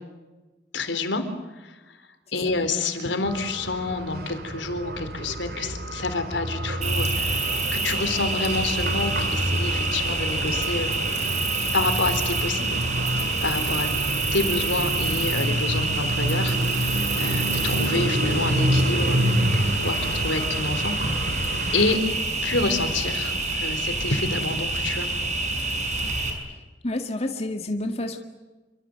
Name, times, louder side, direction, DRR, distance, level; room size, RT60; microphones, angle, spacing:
voice 1, 0.7-1.3 1.5-2.0 2.3-10.9 11.7-13.9 14.3-19.2 19.5-21.0 21.7-22.0 22.4-25.1, left 3 dB, 80° left, 8 dB, 3.9 m, -28 dB
sound 1, 3.2-22.0, equal, 55° right, 2.6 m, -28 dB
Cricket, 6.8-26.3, right 3 dB, 40° right, 6.2 m, -27 dB
voice 2, 26.8-28.2, left 1 dB, 35° left, 4 dB, 2.0 m, -28 dB
28.0 x 25.5 x 7.9 m, 1.2 s
head